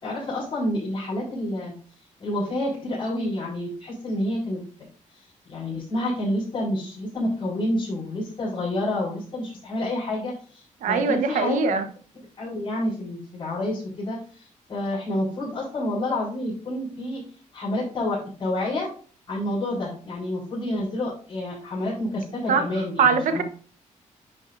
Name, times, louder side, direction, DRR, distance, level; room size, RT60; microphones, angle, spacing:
voice 1, 0.0-1.7 2.2-4.6 5.4-11.8 12.4-17.2 17.5-18.9 19.3-23.4, left 1 dB, 40° left, -10 dB, 4.6 m, -29 dB
voice 2, 10.8-11.8 22.5-22.6 23.0-23.4, right 5 dB, 75° right, 8 dB, 1.2 m, -21 dB
10.5 x 6.5 x 2.6 m, 0.41 s
wide cardioid pair, 175°, 13 cm